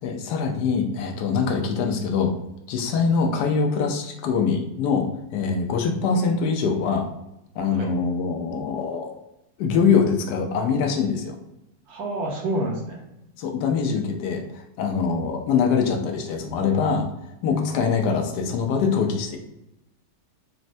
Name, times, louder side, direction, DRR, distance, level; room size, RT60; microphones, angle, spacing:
voice 1, 0.0-2.3 2.7-7.1 7.6-9.1 9.6-11.4 13.4-17.1 17.4-19.4, left 5 dB, 85° left, 3 dB, 1.2 m, -23 dB
voice 2, 11.9-13.0 17.5-17.6, equal, 70° right, -1 dB, 1.3 m, -28 dB
4.2 x 2.1 x 2.6 m, 0.88 s
omnidirectional pair, 1.7 m